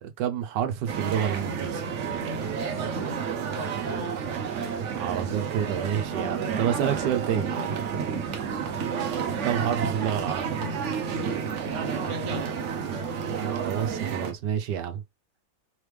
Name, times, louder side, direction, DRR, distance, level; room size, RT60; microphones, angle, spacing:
voice 1, 0.0-1.8 5.0-7.5 9.4-10.5 13.2-15.0, right 9 dB, 75° right, 1.3 m, -29 dB
sound 1, 0.9-14.3, right 6 dB, 55° right, 0.8 m, -30 dB
voice 2, 3.4-4.1 11.7-12.5, right 1 dB, 20° right, 0.9 m, -40 dB
3.9 x 3.2 x 3.2 m
omnidirectional pair, 1.9 m